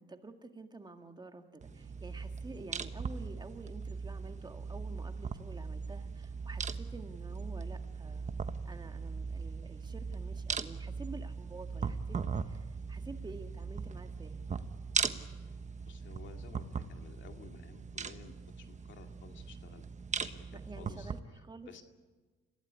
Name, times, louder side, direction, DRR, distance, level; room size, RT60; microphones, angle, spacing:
voice 1, 0.0-8.3 8.6-12.2 12.4-14.4 20.5-21.8, right 2 dB, 20° right, 6 dB, 1.8 m, -49 dB
sound 1, 1.6-21.2, right 5 dB, 35° right, 1.2 m, -39 dB
voice 2, 15.9-19.9 20.2-21.1 21.7-21.8, left 7 dB, 70° left, 5 dB, 2.4 m, -54 dB
26.5 x 16.0 x 9.6 m, 1.3 s
cardioid pair, 90°, 20 cm